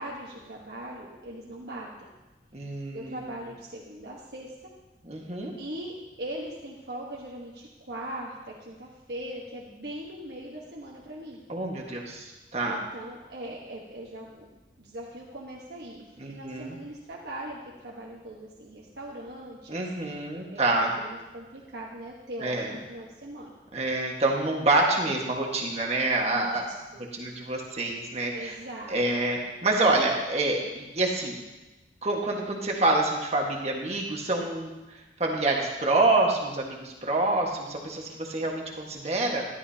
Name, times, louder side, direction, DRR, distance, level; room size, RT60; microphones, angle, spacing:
voice 1, 0.0-2.1 2.9-4.5 5.6-11.4 12.6-19.8 20.5-23.5 26.2-26.5 26.9-27.1 28.3-29.0, right 1 dB, 65° right, -4 dB, 1.3 m, -40 dB
voice 2, 2.5-3.2 5.0-5.5 11.5-12.8 16.2-16.8 19.7-20.9 22.4-22.7 23.7-26.7 27.1-28.6 28.9-31.3 32.0-34.7 35.2-39.5, right 2 dB, 35° right, 0 dB, 1.6 m, -27 dB
13.5 x 12.0 x 2.9 m, 1.1 s
head